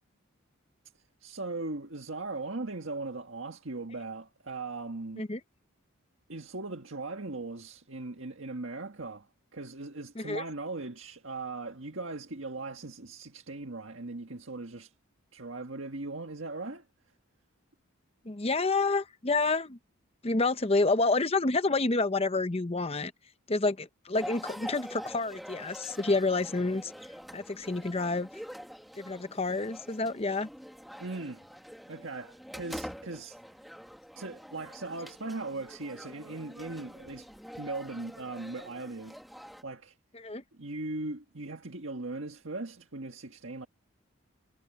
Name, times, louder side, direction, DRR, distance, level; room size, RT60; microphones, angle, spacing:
voice 1, 1.2-5.3 6.3-14.9 15.3-16.8 31.0-31.4 31.9-33.4 34.1-37.3 37.6-39.2 39.6-40.0 40.5-43.7, right 3 dB, 65° right, 1.7 m, -39 dB
voice 2, 18.2-19.8 20.2-23.1 23.5-26.9 27.3-28.3 29.0-30.5 40.1-40.4, left 3 dB, 30° left, 0.8 m, -28 dB
sound 1, 24.1-39.6, equal, ahead, 1.8 m, -45 dB
head